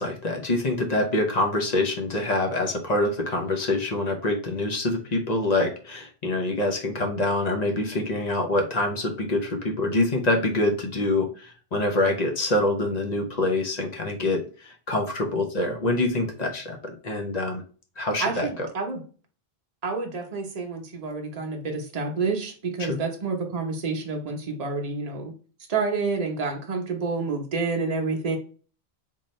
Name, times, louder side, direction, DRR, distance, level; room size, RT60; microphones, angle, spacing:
voice 1, 0.0-17.6 18.0-18.7 22.8-23.0, left 2 dB, 45° left, 2 dB, 0.8 m, -25 dB
voice 2, 18.2-19.0 19.8-25.3 25.7-28.4, right 4 dB, 40° right, 2 dB, 0.9 m, -29 dB
3.8 x 2.7 x 3.1 m, 0.39 s
omnidirectional pair, 1.1 m